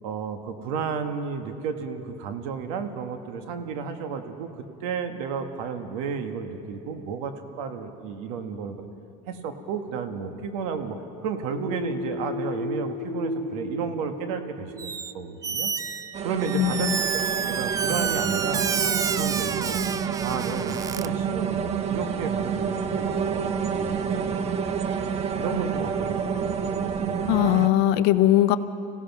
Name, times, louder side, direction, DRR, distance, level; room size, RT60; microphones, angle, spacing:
voice 1, 0.0-4.5 4.8-8.8 9.3-11.0 11.2-15.7 16.2-16.9 17.4-18.7 19.1-19.8 20.2-24.3 24.6-24.8 25.4-27.5, right 6 dB, 85° right, 6 dB, 1.7 m, -33 dB
sound 1, 11.5-15.2, left 2 dB, ahead, 5.4 m, -33 dB
Squeak, 14.8-15.1 15.4-21.1, right 6 dB, 20° right, 0.4 m, -29 dB
sound 2, 16.1-27.7, right 7 dB, 35° right, 1.2 m, -28 dB
voice 2, 16.5-17.0 27.3-28.6, left 13 dB, 70° left, 11 dB, 0.9 m, -20 dB
26.0 x 17.0 x 6.1 m, 2.7 s
supercardioid pair, 125°, 18 cm